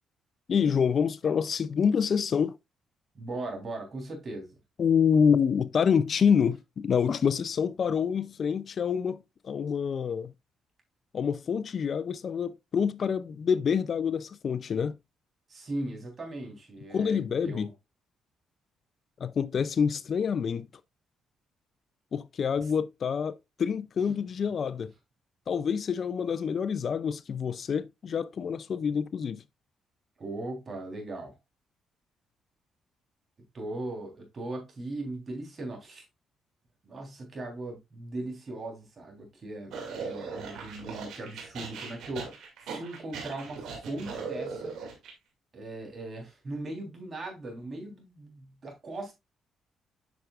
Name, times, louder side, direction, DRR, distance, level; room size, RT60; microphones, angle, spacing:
voice 1, 0.5-2.6 4.8-10.3 11.1-15.0 16.9-17.7 19.2-20.7 22.1-24.9 25.5-29.4, left 7 dB, 50° left, 0.4 m, -27 dB
voice 2, 3.1-4.6 15.5-17.7 30.2-31.3 33.5-36.0 36.8-42.3 42.6-44.7 45.5-49.1, right 2 dB, 40° right, 3.4 m, -39 dB
sound 1, 39.7-45.1, right 5 dB, 80° right, 2.2 m, -39 dB
8.0 x 5.9 x 2.4 m
cardioid pair, 90°, 0 cm